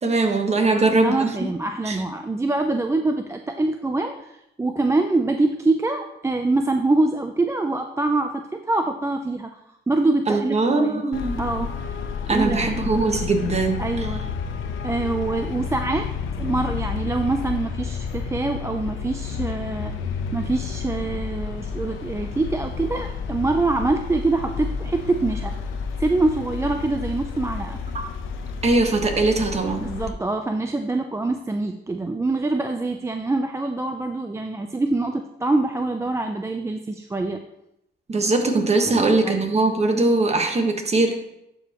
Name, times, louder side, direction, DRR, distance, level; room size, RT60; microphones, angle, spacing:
voice 1, 0.0-1.3 1.9-2.0 10.3-11.4 12.3-14.0 28.6-29.9 38.1-41.2, right 3 dB, 35° right, 4 dB, 1.3 m, -21 dB
voice 2, 0.6-9.5 9.9-11.0 11.4-12.0 12.3-12.7 13.8-14.2 14.8-16.1 16.4-19.9 20.3-25.5 26.0-27.8 29.8-37.4 38.8-39.6, right 2 dB, 15° right, 5 dB, 0.4 m, -25 dB
Traffic noise roadway noise, 11.1-30.1, left 6 dB, 85° left, 0.8 m, -31 dB
11.5 x 4.9 x 3.0 m, 0.83 s
cardioid pair, 90°, 20 cm